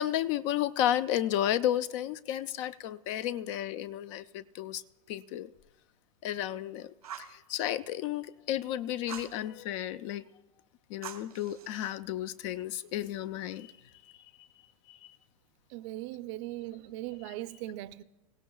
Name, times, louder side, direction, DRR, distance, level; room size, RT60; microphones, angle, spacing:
voice 1, 0.0-4.8 5.1-5.5 6.2-10.2 10.9-13.7 14.0-14.1 14.9-15.1, left 12 dB, 55° left, 0.6 m, -32 dB
Fire, 7.0-7.4 9.1-9.4 11.0-11.9, right 9 dB, 85° right, 1.2 m, -44 dB
voice 2, 15.7-18.0, right 16 dB, 50° right, 0.6 m, -39 dB
25.0 x 16.5 x 2.3 m
hypercardioid pair, 100°, 19 cm